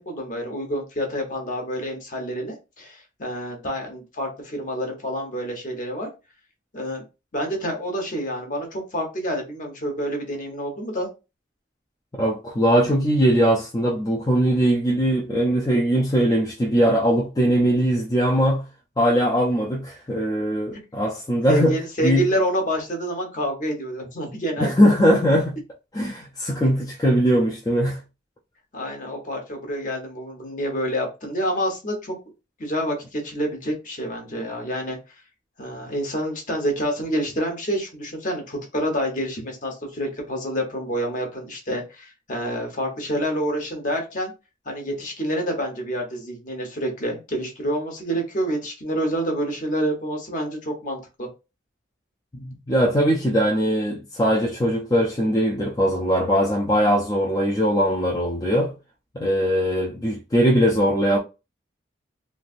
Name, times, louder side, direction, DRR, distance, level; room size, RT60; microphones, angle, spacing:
voice 1, 0.0-6.1 6.7-7.0 7.3-11.1 20.7-20.8 21.5-24.7 28.7-32.1 32.6-35.0 35.6-44.3 44.7-51.3, equal, 40° left, 0.9 m, -28 dB
voice 2, 12.2-18.6 19.0-21.8 22.0-22.2 24.6-25.6 25.9-28.0 52.3-58.7 59.1-61.2, equal, 20° left, 0.4 m, -20 dB
3.2 x 2.5 x 2.4 m
head